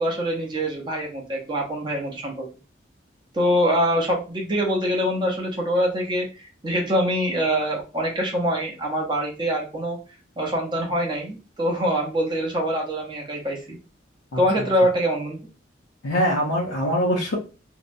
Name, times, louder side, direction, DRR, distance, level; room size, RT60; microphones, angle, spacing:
voice 1, 0.0-2.5 3.3-10.0 10.4-13.8 14.4-15.4, equal, 25° right, -1 dB, 0.7 m, -24 dB
voice 2, 14.3-14.7 16.0-17.4, equal, 85° left, -3 dB, 0.6 m, -23 dB
2.7 x 2.1 x 2.5 m, 0.32 s
head